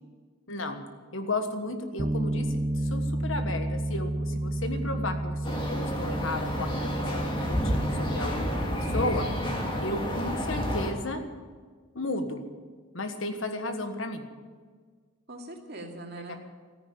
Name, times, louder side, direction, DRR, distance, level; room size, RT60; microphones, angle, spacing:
voice 1, 0.5-0.8 1.1-2.6 2.9-9.3 9.8-11.2 11.9-12.4 12.9-14.3 16.3-16.4, left 2 dB, 70° left, 7 dB, 1.5 m, -34 dB
Bass guitar, 2.0-8.2, right 1 dB, 20° right, 0.5 m, -31 dB
voice 2, 4.7-5.1 15.3-16.4, right 1 dB, 50° right, 1 dB, 2.4 m, -42 dB
sound 1, 5.4-10.9, equal, 25° left, 2.2 m, -30 dB
14.0 x 10.0 x 8.8 m, 1.5 s
head